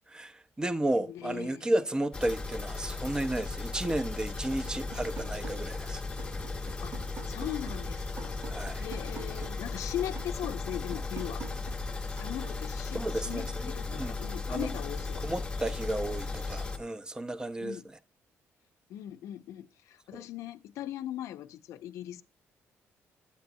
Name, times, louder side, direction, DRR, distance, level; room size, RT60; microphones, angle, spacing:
voice 1, 0.1-6.0 8.5-8.9 12.9-14.2 14.5-14.7 15.2-18.0 20.1-20.2, right 1 dB, 15° right, 0.4 m, -33 dB
voice 2, 1.0-1.7 6.8-8.4 8.8-11.5 12.2-15.3 17.6-17.8 18.9-22.2, left 12 dB, 85° left, 0.4 m, -39 dB
sound 1, 2.1-16.8, left 3 dB, 20° left, 0.8 m, -36 dB
sound 2, 4.7-5.8 6.2-9.7 10.2-12.7, right 6 dB, 50° right, 0.9 m, -47 dB
8.6 x 8.1 x 2.6 m
cardioid pair, 120°, 5 cm